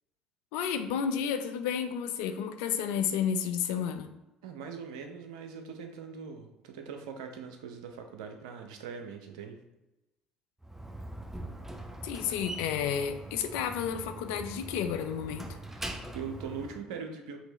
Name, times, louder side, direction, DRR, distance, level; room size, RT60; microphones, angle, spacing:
voice 1, 0.5-4.1 12.0-15.6, left 8 dB, 70° left, 8 dB, 0.4 m, -31 dB
voice 2, 4.4-9.6 15.7-17.4, right 6 dB, 80° right, 5 dB, 0.6 m, -41 dB
Slam, 10.6-16.8, right 1 dB, 10° right, 0.6 m, -42 dB
4.5 x 2.8 x 4.0 m, 0.97 s
hypercardioid pair, 60°, 4 cm